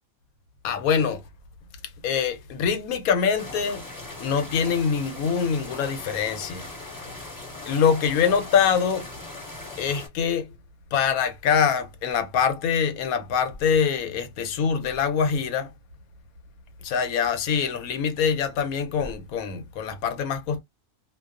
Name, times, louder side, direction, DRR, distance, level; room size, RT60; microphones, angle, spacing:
voice 1, 0.6-1.2 2.0-3.8 4.2-6.6 7.7-9.1 9.8-10.5 10.9-15.7 16.8-20.6, left 7 dB, 85° left, 1.1 m, -24 dB
sound 1, 3.4-10.1, left 2 dB, 15° left, 1.0 m, -39 dB
2.3 x 2.2 x 2.4 m
omnidirectional pair, 1.5 m